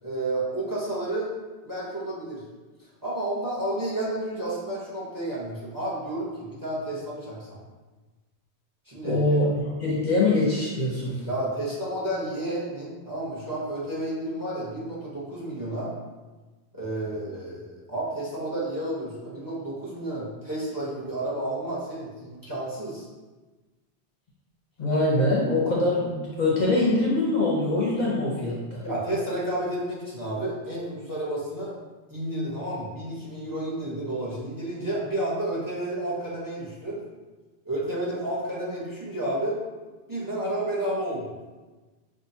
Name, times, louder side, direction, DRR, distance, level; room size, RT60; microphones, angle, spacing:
voice 1, 0.0-1.3 1.6-2.4 3.0-7.6 8.9-9.2 11.3-15.9 16.7-23.1 28.8-31.7 32.1-37.0 37.6-39.6 40.1-41.3, right 1 dB, 20° right, -7 dB, 0.9 m, -31 dB
voice 2, 9.0-11.2 24.8-28.8, left 2 dB, 45° left, -5 dB, 0.7 m, -23 dB
5.6 x 2.5 x 2.7 m, 1.3 s
omnidirectional pair, 1.1 m